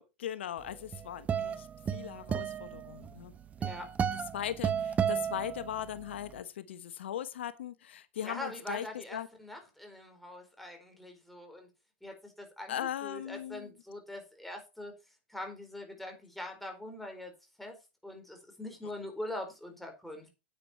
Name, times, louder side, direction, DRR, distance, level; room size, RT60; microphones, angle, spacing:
voice 1, 0.0-3.3 4.3-9.3 12.7-13.7, left 10 dB, 80° left, 1.0 m, -39 dB
sound 1, 0.7-6.1, right 8 dB, 25° right, 1.0 m, -33 dB
voice 2, 8.2-11.7 12.0-14.9 15.3-17.3 17.6-17.8 18.0-20.3, left 1 dB, ahead, 4.4 m, -43 dB
9.7 x 8.8 x 4.4 m
hypercardioid pair, 115°, 6 cm